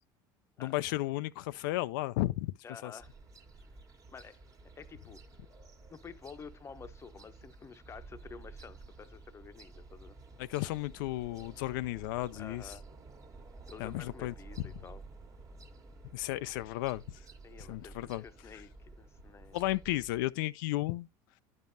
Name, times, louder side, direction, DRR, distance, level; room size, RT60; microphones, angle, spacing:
voice 1, 0.6-2.5 2.8-2.9 10.4-12.7 13.8-14.7 16.1-17.2 17.6-18.2 19.5-21.1, left 17 dB, 85° left, 0.4 m, -34 dB
voice 2, 2.6-3.1 4.1-4.3 4.8-5.2 5.9-10.2 12.3-12.8 13.7-15.0 17.4-19.6, left 6 dB, 25° left, 0.7 m, -50 dB
sound 1, 3.0-20.3, right 3 dB, 30° right, 1.4 m, -52 dB
10.5 x 5.4 x 2.7 m
supercardioid pair, 105°, 11 cm